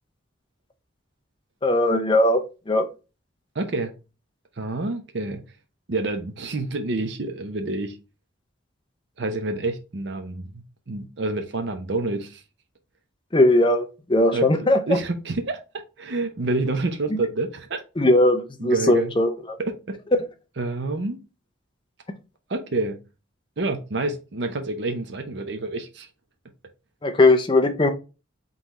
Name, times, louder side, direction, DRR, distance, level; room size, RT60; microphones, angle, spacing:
voice 1, 1.6-2.8 13.3-13.8 14.1-14.8 18.0-19.3 27.0-27.9, left 1 dB, 25° left, 0.6 m, -19 dB
voice 2, 3.5-3.9 4.6-5.4 5.9-8.0 9.2-12.4 14.3-14.5 14.9-15.6 16.0-17.8 18.6-19.1 19.9-20.0 20.6-21.2 22.5-23.0 23.6-26.1, right 2 dB, 60° right, 0.6 m, -28 dB
3.9 x 3.9 x 3.0 m
head